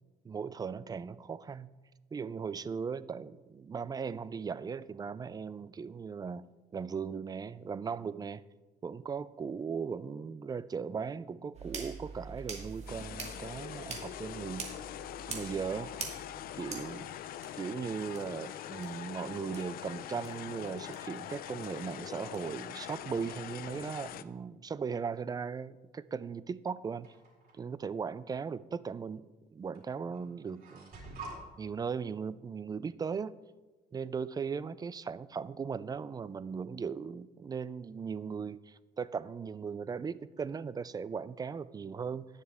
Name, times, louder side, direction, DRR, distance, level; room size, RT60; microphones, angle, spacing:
voice 1, 0.2-1.7 2.1-8.4 8.8-14.8 15.3-15.9 16.6-17.1 17.6-27.1 27.5-30.9 31.6-33.3 33.9-42.3, right 6 dB, 25° right, 17 dB, 0.3 m, -38 dB
sound 1, 11.5-17.5 18.2-18.3 18.8-18.9 19.5-19.6 20.2-20.3 20.9-21.0 21.6-21.7 22.3-22.4, right 4 dB, 40° right, 2.2 m, -44 dB
sound 2, 12.9-24.2, left 11 dB, 60° left, 0.5 m, -43 dB
sound 3, 27.0-27.6 28.7-28.8 29.7-29.9 30.1-31.4, right 3 dB, 60° right, 4.1 m, -46 dB
18.5 x 6.6 x 3.5 m, 1.2 s
cardioid pair, 110°, 17 cm